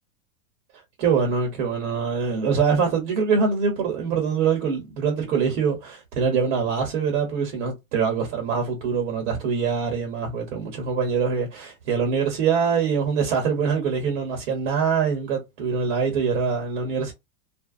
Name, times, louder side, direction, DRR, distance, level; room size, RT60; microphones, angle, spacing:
voice 1, 1.0-17.1, right 6 dB, 55° right, 1.1 m, -24 dB
2.6 x 2.1 x 2.3 m
supercardioid pair, 150°, 47 cm